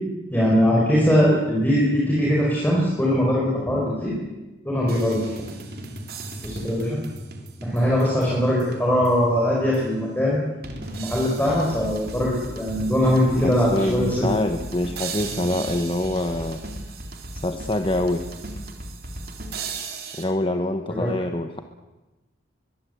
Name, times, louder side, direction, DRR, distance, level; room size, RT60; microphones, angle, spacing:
voice 1, 0.3-4.1 4.6-5.4 6.4-7.0 7.6-10.4 10.9-14.3 20.9-21.1, equal, 10° left, -4 dB, 4.9 m, -21 dB
sound 1, 4.9-9.3 9.7-9.8 10.6-20.2, right 2 dB, 55° right, 3.7 m, -36 dB
voice 2, 13.4-16.6 17.4-18.2 20.2-21.6, left 1 dB, 30° left, 6 dB, 1.1 m, -25 dB
22.5 x 22.0 x 8.1 m, 1.1 s
head